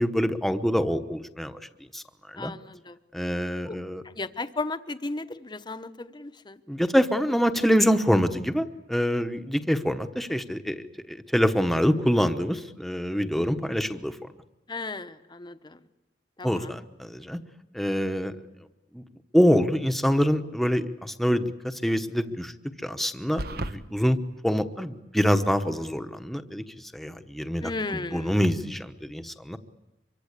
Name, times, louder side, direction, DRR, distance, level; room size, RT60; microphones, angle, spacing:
voice 1, 0.0-1.6 1.9-2.5 3.1-4.0 6.7-10.8 11.1-14.2 16.4-17.4 17.7-18.3 18.9-19.0 19.3-22.5 22.8-24.2 24.4-26.6 26.9-29.6, equal, ahead, 8 dB, 1.2 m, -25 dB
voice 2, 2.4-2.9 3.7-3.8 4.2-6.6 14.7-15.8 16.4-16.7 27.6-28.3, left 3 dB, 25° left, 11 dB, 1.0 m, -35 dB
sound 1, 23.4-23.8, right 1 dB, 60° right, 1.2 m, -31 dB
25.0 x 24.0 x 8.3 m, 0.99 s
head